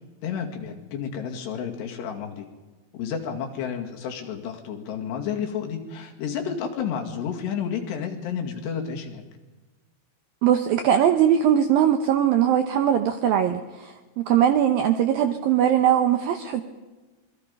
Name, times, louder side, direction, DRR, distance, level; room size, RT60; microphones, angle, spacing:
voice 1, 0.2-2.5 2.9-9.2, left 7 dB, 65° left, 2 dB, 4.2 m, -31 dB
voice 2, 10.4-16.6, right 9 dB, 85° right, 8 dB, 2.0 m, -21 dB
26.0 x 22.0 x 5.4 m, 1.3 s
omnidirectional pair, 5.5 m